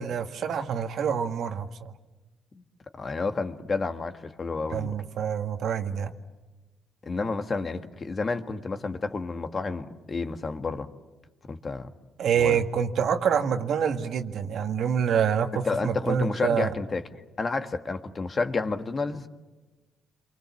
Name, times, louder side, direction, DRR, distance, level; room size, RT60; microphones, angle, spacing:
voice 1, 0.0-1.9 4.7-6.1 12.2-16.7, right 7 dB, 70° right, 6 dB, 1.8 m, -26 dB
voice 2, 3.0-4.9 7.0-10.9 11.5-11.9 12.4-12.6 15.5-17.1 17.4-19.3, left 3 dB, 35° left, 8 dB, 1.7 m, -30 dB
28.0 x 24.0 x 7.3 m, 1.2 s
cardioid pair, 90°, 0 cm